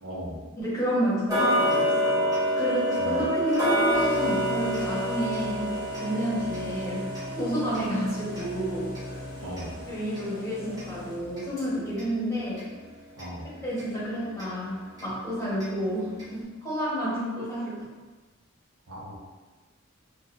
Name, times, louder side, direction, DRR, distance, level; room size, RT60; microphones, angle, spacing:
voice 1, 0.0-0.4 3.0-3.2 9.4-9.8 13.2-13.5 18.9-19.2, equal, 85° right, -4 dB, 0.8 m, -37 dB
voice 2, 0.6-2.3 2.5-8.9 9.9-12.6 13.6-17.8, equal, 15° left, -10 dB, 1.2 m, -30 dB
Tick-tock, 1.3-12.1 12.5-12.6 13.2-13.3 13.8-13.9 14.4-14.5 15.0-15.1 15.6-15.7 16.2-16.3, equal, 15° right, 1.0 m, -28 dB
sound 1, 3.9-11.6, left 1 dB, 45° left, 0.8 m, -41 dB
4.0 x 2.4 x 2.6 m, 1.3 s
head